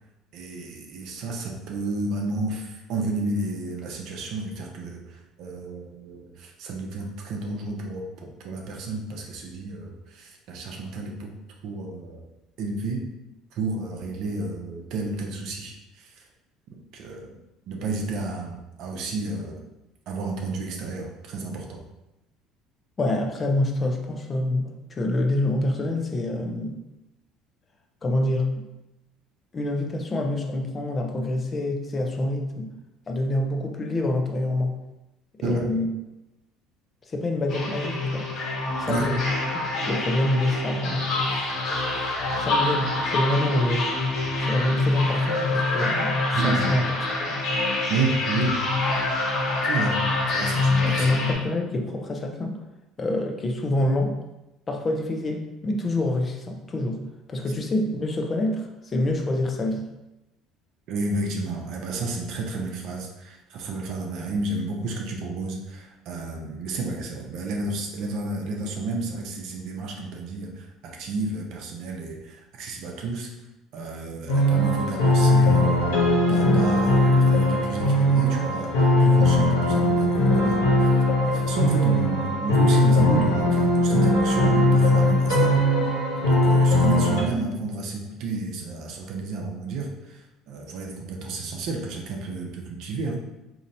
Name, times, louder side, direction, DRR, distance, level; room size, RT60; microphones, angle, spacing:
voice 1, 0.3-11.3 11.6-12.2 12.6-13.1 13.5-16.2 16.9-17.3 17.7-19.6 20.1-21.8 35.4-35.6 38.9-39.1 46.3-46.7 47.9-48.6 49.6-50.0 50.3-51.1 60.9-73.3 73.7-76.0 76.3-93.2, right 3 dB, 65° right, 1 dB, 0.7 m, -31 dB
voice 2, 23.0-26.8 28.0-28.7 29.5-32.7 33.1-34.8 35.4-35.9 37.1-38.3 38.8-39.2 39.9-41.1 42.4-43.9 44.5-46.2 46.4-46.9 47.2-47.4 50.8-52.6 53.0-54.2 54.7-57.0 57.3-59.8, left 1 dB, 35° left, 3 dB, 0.6 m, -26 dB
sound 1, 37.5-51.3, left 2 dB, 65° left, 1.3 m, -25 dB
sound 2, 74.3-87.2, left 1 dB, 80° left, 0.8 m, -20 dB
3.9 x 2.8 x 2.6 m, 0.96 s
hypercardioid pair, 75°, 0 cm